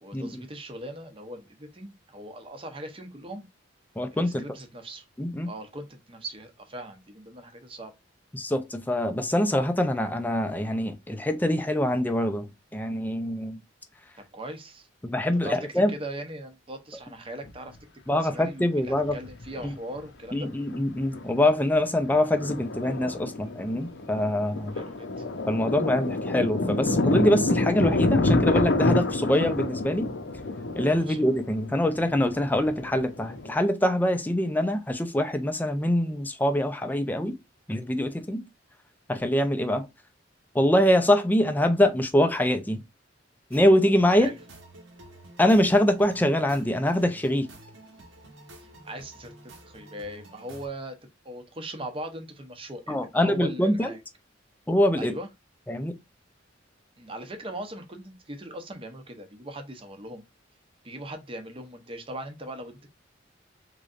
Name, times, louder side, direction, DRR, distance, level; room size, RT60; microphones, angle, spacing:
voice 1, 0.0-3.5 4.1-5.0 5.5-7.9 14.2-14.9 15.4-17.8 18.1-20.5 24.7-25.2 31.0-31.3 44.1-44.4 48.6-51.0 51.2-54.0 55.0-55.3 57.0-60.2 60.8-62.9, right 1 dB, 30° right, 0.7 m, -40 dB
voice 2, 4.0-4.4 5.2-5.5 8.3-13.6 15.0-15.9 18.1-19.2 19.6-19.7 20.3-24.8 25.5-30.1 30.8-37.3 37.7-38.4 39.1-39.9 40.5-42.8 43.5-44.3 45.4-47.5 52.9-53.9 54.7-55.2 55.7-55.9, left 1 dB, 10° left, 0.4 m, -24 dB
Thunder, 17.5-17.6 18.9-19.7 20.0-20.1 20.5-20.8 21.1-33.5, left 2 dB, 65° left, 0.6 m, -28 dB
sound 1, 43.5-50.7, right 1 dB, 90° right, 1.3 m, -49 dB
3.7 x 3.1 x 2.4 m
head